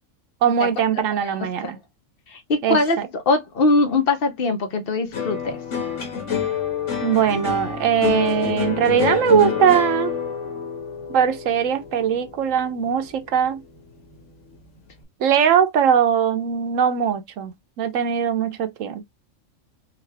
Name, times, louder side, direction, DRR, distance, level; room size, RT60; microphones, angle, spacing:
voice 1, 0.4-1.8 2.6-2.8 7.0-10.1 11.1-13.6 15.2-17.5 17.8-19.0, right 8 dB, 80° right, 1.1 m, -20 dB
voice 2, 2.3-5.6, left 3 dB, 50° left, 0.9 m, -22 dB
sound 1, 5.1-13.6 13.9-14.5, left 7 dB, 70° left, 1.4 m, -27 dB
3.8 x 2.4 x 3.3 m
omnidirectional pair, 1.3 m